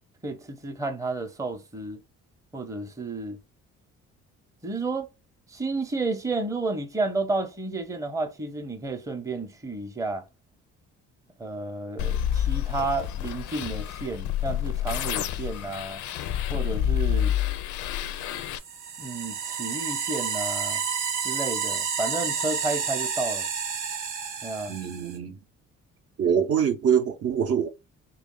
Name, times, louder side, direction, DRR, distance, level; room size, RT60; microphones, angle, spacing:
voice 1, 0.2-2.0 2.5-3.4 4.6-5.1 5.5-10.2 11.4-16.0 16.5-17.3 19.0-20.8 21.2-23.5 24.4-24.8, right 3 dB, 10° right, 0.6 m, -31 dB
sound 1, 12.0-18.6, left 10 dB, 75° left, 0.4 m, -28 dB
sound 2, 18.4-25.2, right 6 dB, 85° right, 0.8 m, -30 dB
voice 2, 24.7-25.4 26.2-27.7, right 8 dB, 55° right, 0.6 m, -24 dB
3.4 x 2.3 x 3.7 m
cardioid pair, 90°, 30 cm